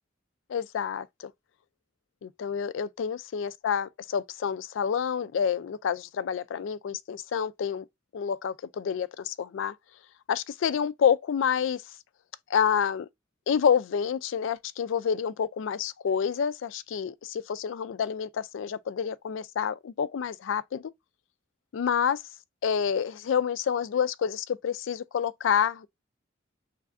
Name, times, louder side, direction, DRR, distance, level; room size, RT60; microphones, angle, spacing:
voice 1, 0.5-1.3 2.2-7.8 8.1-9.8 10.3-11.8 12.5-13.1 13.5-20.9 21.7-22.2 22.6-25.9, left 7 dB, 70° left, 0.3 m, -28 dB
3.2 x 2.5 x 3.4 m
head